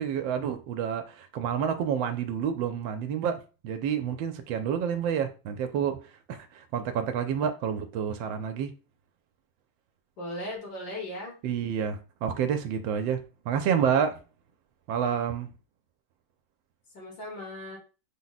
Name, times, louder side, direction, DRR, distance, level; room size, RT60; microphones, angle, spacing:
voice 1, 0.0-6.0 6.3-8.7 11.4-14.2 14.9-15.5, right 8 dB, 85° right, 1.3 m, -29 dB
voice 2, 10.2-11.3 16.9-17.8, left 1 dB, 75° left, 2.4 m, -37 dB
5.9 x 2.1 x 4.0 m
omnidirectional pair, 2.0 m